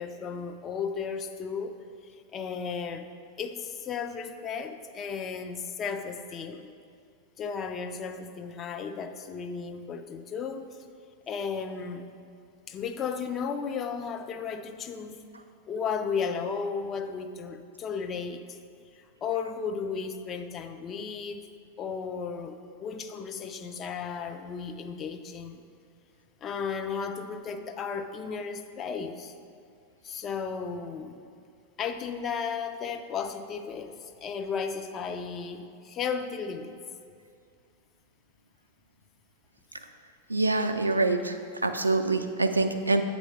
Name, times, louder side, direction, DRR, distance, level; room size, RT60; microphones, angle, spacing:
voice 1, 0.0-1.8 2.3-3.1 3.4-6.7 7.4-10.7 11.3-12.1 12.7-15.2 15.7-18.5 19.2-21.5 21.8-25.6 26.4-29.3 30.0-31.2 31.8-36.7, left 6 dB, 30° left, 7 dB, 0.4 m, -34 dB
voice 2, 40.3-41.4 41.6-43.0, right 3 dB, 80° right, 7 dB, 0.3 m, -25 dB
7.8 x 3.0 x 5.1 m, 2.3 s
figure-of-eight pair, 90°, 0 cm